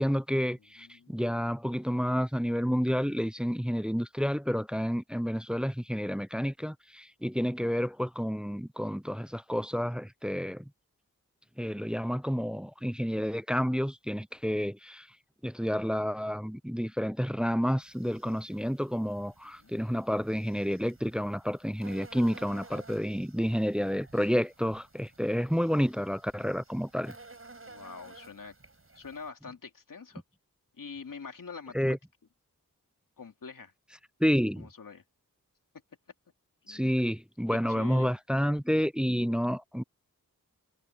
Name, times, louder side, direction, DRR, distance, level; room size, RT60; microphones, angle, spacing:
voice 1, 0.0-10.6 11.6-15.1 15.4-27.1 31.7-32.0 34.2-34.7 36.7-39.8, equal, 5° right, 0.6 m, -30 dB
voice 2, 0.8-1.2 19.6-19.7 27.6-28.5 28.9-30.2 30.8-32.0 33.2-33.7 34.6-35.0 36.6-37.0 37.5-38.1, left 5 dB, 75° left, 2.7 m, -45 dB
sound 1, 17.8-29.3, right 3 dB, 40° right, 6.3 m, -54 dB
wide cardioid pair, 75°, 33 cm